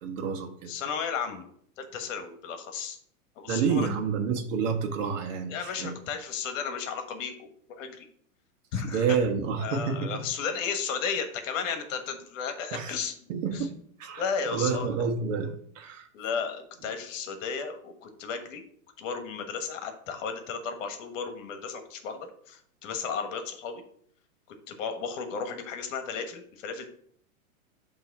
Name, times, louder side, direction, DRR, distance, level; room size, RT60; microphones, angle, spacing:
voice 1, 0.0-0.7 3.5-6.0 8.8-10.2 12.7-12.9 13.3-13.7 14.0-14.2 14.5-16.1, right 6 dB, 60° right, 6 dB, 1.3 m, -29 dB
voice 2, 0.7-1.5 1.8-3.0 3.4-3.9 5.5-8.1 8.7-9.0 9.6-13.1 13.5-13.7 14.2-14.9 16.1-18.6 19.0-23.8 24.5-26.8, left 6 dB, 60° left, 7 dB, 1.4 m, -34 dB
7.1 x 3.1 x 5.9 m, 0.62 s
hypercardioid pair, 130°, 43 cm